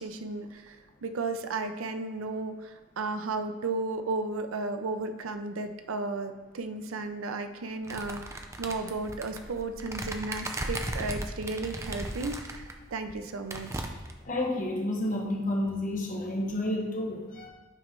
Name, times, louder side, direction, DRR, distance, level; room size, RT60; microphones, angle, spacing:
voice 1, 0.0-13.8, right 3 dB, 90° right, 8 dB, 0.5 m, -34 dB
sound 1, 7.9-12.7 13.1-13.2 13.5-14.2, right 1 dB, 15° right, 0.4 m, -36 dB
voice 2, 14.2-17.5, left 1 dB, 40° left, -1 dB, 1.2 m, -30 dB
9.0 x 3.1 x 5.3 m, 1.2 s
head